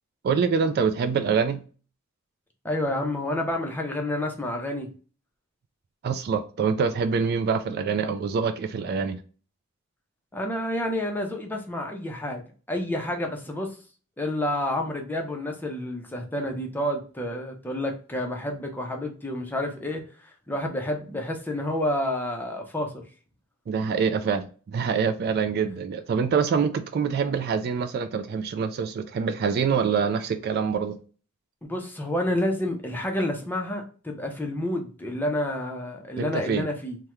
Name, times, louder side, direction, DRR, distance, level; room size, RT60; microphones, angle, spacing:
voice 1, 0.2-1.6 6.0-9.2 23.7-31.0 36.2-36.7, right 6 dB, 50° right, 0.3 m, -25 dB
voice 2, 2.6-4.9 10.3-12.4 12.7-13.7 14.2-20.0 20.5-23.0 31.6-37.0, left 1 dB, 10° left, 0.6 m, -29 dB
3.5 x 2.1 x 2.9 m
head